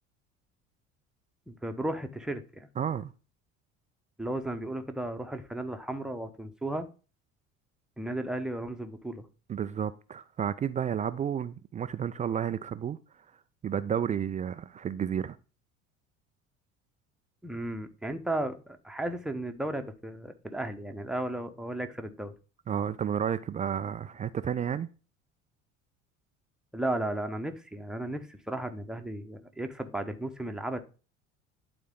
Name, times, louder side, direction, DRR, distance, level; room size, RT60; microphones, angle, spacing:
voice 1, 1.5-2.7 4.2-6.9 8.0-9.3 17.4-22.3 26.7-30.8, right 1 dB, ahead, 1.0 m, -34 dB
voice 2, 2.8-3.1 9.5-13.0 13.6-15.4 22.7-24.9, right 8 dB, 20° right, 0.4 m, -31 dB
11.0 x 4.2 x 3.8 m
figure-of-eight pair, 60°, 38 cm